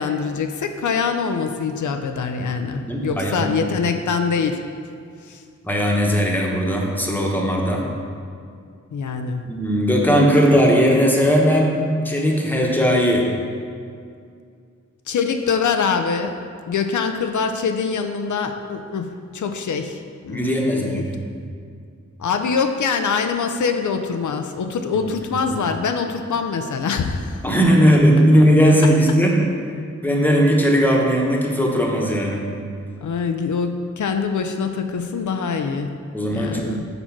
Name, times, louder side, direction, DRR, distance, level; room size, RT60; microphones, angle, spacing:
voice 1, 0.0-4.6 5.2-5.4 8.9-9.4 15.1-16.4 16.7-21.1 22.2-27.4 33.0-36.0 36.3-36.8, left 5 dB, 85° left, 6 dB, 0.5 m, -24 dB
voice 2, 2.9-3.6 5.6-7.8 9.4-11.8 12.0-13.3 20.3-21.3 24.9-25.1 25.5-25.6 27.4-29.3 30.0-32.4 36.1-36.8, equal, 5° left, -1 dB, 1.0 m, -18 dB
6.7 x 4.4 x 5.9 m, 2.3 s
wide cardioid pair, 130°, 29 cm